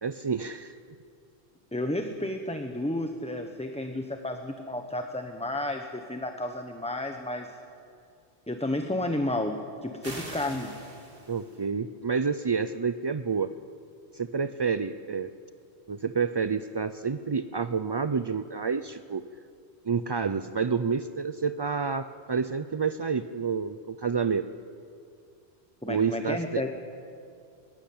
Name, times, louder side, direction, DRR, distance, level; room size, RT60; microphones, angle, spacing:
voice 1, 0.0-0.8 11.3-13.5 14.1-15.3 15.9-19.2 19.8-24.5 25.9-26.6, right 5 dB, 40° right, 11 dB, 0.3 m, -29 dB
voice 2, 1.7-7.5 8.5-10.7 25.8-26.8, left 1 dB, 5° left, 5 dB, 1.1 m, -32 dB
sound 1, 10.0-11.6, right 2 dB, 55° right, 3.0 m, -42 dB
22.0 x 18.5 x 8.8 m, 2.4 s
omnidirectional pair, 1.1 m